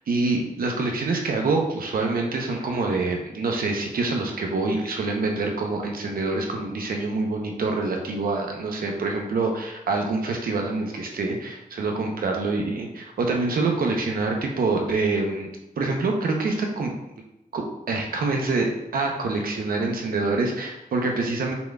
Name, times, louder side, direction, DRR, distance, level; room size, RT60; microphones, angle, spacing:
voice 1, 0.1-15.5 15.8-16.9 17.5-21.5, right 3 dB, 80° right, 2 dB, 0.8 m, -26 dB
5.9 x 3.7 x 2.4 m, 0.94 s
cardioid pair, 65°, 15 cm